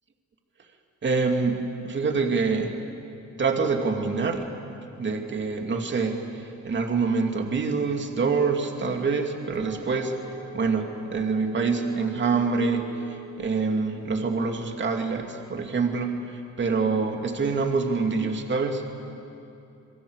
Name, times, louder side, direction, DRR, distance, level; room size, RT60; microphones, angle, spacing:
voice 1, 1.0-2.7 3.4-6.2 6.6-10.1 10.5-12.8 13.4-18.8, right 4 dB, 40° right, 3 dB, 2.7 m, -26 dB
sound 1, 9.6-15.1, right 6 dB, 85° right, 4.8 m, -43 dB
27.5 x 22.5 x 8.2 m, 2.8 s
cardioid pair, 90°, 30 cm